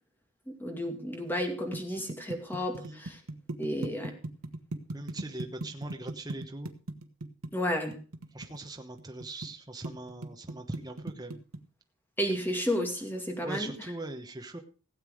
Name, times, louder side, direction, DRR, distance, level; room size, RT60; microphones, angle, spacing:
voice 1, 0.6-3.2 3.6-4.1 7.5-8.0 12.2-13.7, equal, 10° left, 3 dB, 2.3 m, -32 dB
bongo thing short, 1.3-9.5 9.8-11.6, right 2 dB, 75° right, 1.3 m, -38 dB
voice 2, 4.9-6.7 8.3-11.4 13.4-14.6, right 2 dB, 20° right, 4 dB, 1.1 m, -41 dB
16.5 x 8.2 x 5.0 m, 0.38 s
head